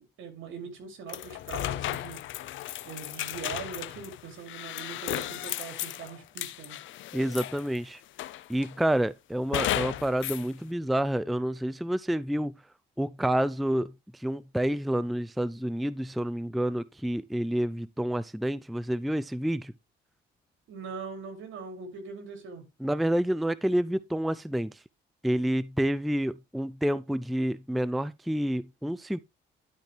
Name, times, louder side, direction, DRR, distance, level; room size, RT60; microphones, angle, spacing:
voice 1, 0.0-2.2 2.8-6.8 20.7-22.6, right 5 dB, 80° right, 2.9 m, -41 dB
sound 1, 1.1-7.8 8.2-8.8 9.5-10.5, left 14 dB, 75° left, 0.5 m, -35 dB
voice 2, 7.1-8.0 8.5-12.5 13.0-13.9 14.2-19.7 22.8-24.7 25.2-29.2, right 1 dB, ahead, 0.4 m, -28 dB
11.5 x 4.5 x 3.3 m
cardioid pair, 90°, 20 cm